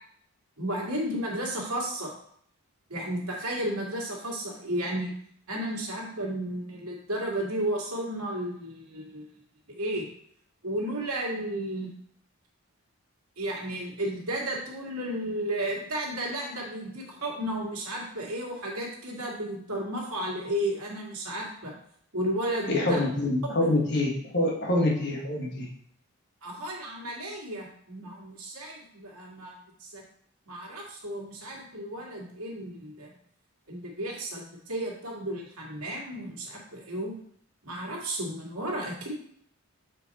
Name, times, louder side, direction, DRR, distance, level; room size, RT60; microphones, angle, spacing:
voice 1, 0.6-2.1 2.9-5.1 5.5-9.3 9.8-10.1 10.6-11.9 13.4-21.7 22.1-23.0 23.6-23.7 26.4-30.0 30.5-33.1 33.7-37.1 37.6-39.2, right 1 dB, 90° right, -2 dB, 2.1 m, -33 dB
voice 2, 22.7-25.7, left 1 dB, 50° left, -1 dB, 1.3 m, -26 dB
7.0 x 4.6 x 4.1 m, 0.64 s
head